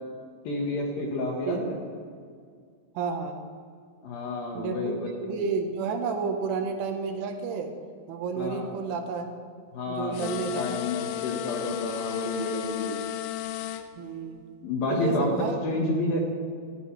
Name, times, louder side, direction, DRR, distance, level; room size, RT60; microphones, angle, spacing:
voice 1, 0.4-1.8 4.0-4.9 8.4-8.7 9.7-10.2 10.6-12.9 14.6-15.3 15.6-16.2, left 2 dB, 65° left, 0 dB, 2.4 m, -29 dB
voice 2, 1.5-1.8 3.0-3.4 4.5-7.7 8.1-9.3 9.9-10.6 11.0-11.1 14.0-14.4 14.9-15.6, right 5 dB, 75° right, 4 dB, 3.5 m, -31 dB
sound 1, 10.1-13.8, left 13 dB, 85° left, 3.3 m, -34 dB
18.5 x 16.0 x 3.3 m, 2.1 s
omnidirectional pair, 5.8 m